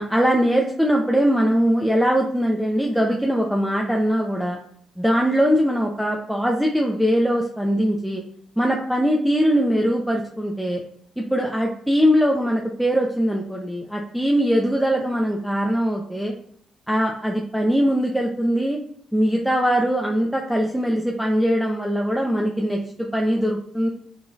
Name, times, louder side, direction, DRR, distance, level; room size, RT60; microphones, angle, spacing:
voice 1, 0.0-4.6 5.0-8.2 8.6-10.8 11.2-16.3 16.9-18.8 19.1-23.9, equal, ahead, 0 dB, 0.4 m, -21 dB
4.0 x 3.9 x 2.3 m, 0.66 s
cardioid pair, 90°, 0 cm